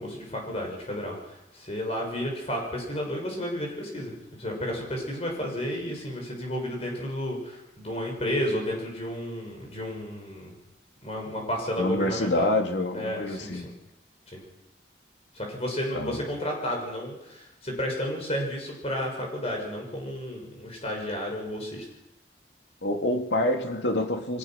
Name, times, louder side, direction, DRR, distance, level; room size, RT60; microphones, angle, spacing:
voice 1, 0.0-4.1 4.4-10.5 11.0-12.5 12.9-13.7 14.3-14.4 15.3-21.8, equal, 35° left, 1 dB, 6.2 m, -32 dB
voice 2, 11.8-13.8 15.9-16.2 22.8-24.4, left 1 dB, 70° left, 4 dB, 2.7 m, -27 dB
23.5 x 20.0 x 6.0 m, 0.90 s
head